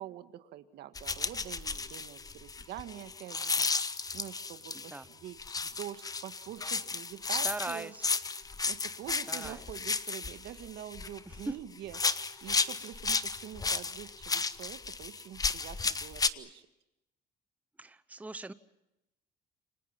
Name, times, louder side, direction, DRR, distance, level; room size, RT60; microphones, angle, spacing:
voice 1, 0.0-3.7 4.1-7.9 8.7-16.7, right 12 dB, 75° right, 10 dB, 1.9 m, -46 dB
sound 1, 0.9-5.0 5.4-11.5 11.9-16.3, left 4 dB, 20° left, 1.1 m, -33 dB
voice 2, 7.4-8.1 9.3-9.6 11.3-11.5 17.8-18.5, right 2 dB, 10° right, 14 dB, 0.9 m, -39 dB
29.0 x 25.5 x 5.9 m, 0.90 s
cardioid pair, 110°, 17 cm